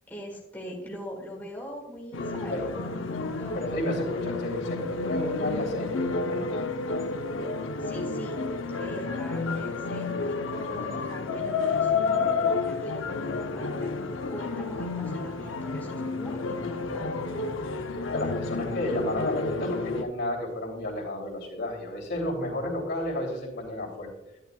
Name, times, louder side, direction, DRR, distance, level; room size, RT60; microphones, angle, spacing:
voice 1, 0.1-3.6 7.8-8.4 8.8-13.9 14.3-17.4, equal, 10° left, -2 dB, 1.8 m, -42 dB
sound 1, 2.1-20.0, left 4 dB, 85° left, 0.8 m, -30 dB
voice 2, 3.5-6.5 18.1-24.1, left 1 dB, 65° left, -2 dB, 3.1 m, -32 dB
11.0 x 11.0 x 2.4 m, 0.91 s
head